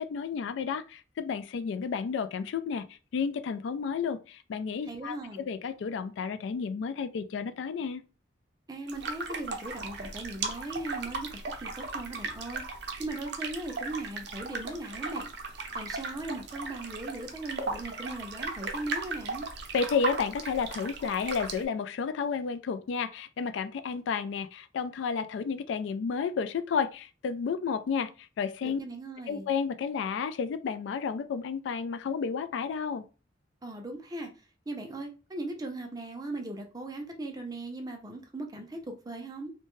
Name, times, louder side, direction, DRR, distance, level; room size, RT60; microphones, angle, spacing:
voice 1, 0.0-8.0 19.7-28.8 29.3-33.0, left 6 dB, 70° left, 0.3 m, -32 dB
voice 2, 4.8-5.4 8.7-11.3 11.6-12.6 13.0-15.3 15.6-19.5 28.6-29.5 33.6-34.3 34.7-39.5, right 2 dB, 20° right, 0.5 m, -38 dB
sound 1, 8.9-21.6, right 3 dB, 65° right, 0.6 m, -37 dB
2.7 x 2.2 x 3.0 m
head